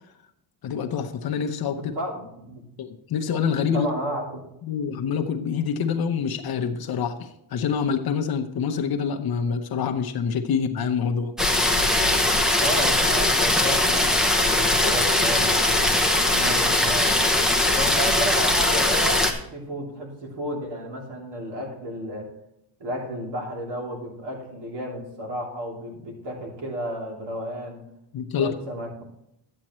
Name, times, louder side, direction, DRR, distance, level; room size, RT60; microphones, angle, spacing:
voice 1, 0.6-1.8 2.8-3.9 4.6-11.3 28.1-28.5, left 6 dB, 50° left, 5 dB, 0.9 m, -26 dB
voice 2, 1.7-2.6 3.7-4.4 12.6-17.5 17.7-22.3 22.8-27.8 28.4-29.0, equal, 60° right, -1 dB, 3.2 m, -32 dB
sound 1, 11.4-19.3, left 1 dB, ahead, 0.8 m, -20 dB
12.0 x 8.7 x 3.1 m, 0.80 s
cardioid pair, 145°, 47 cm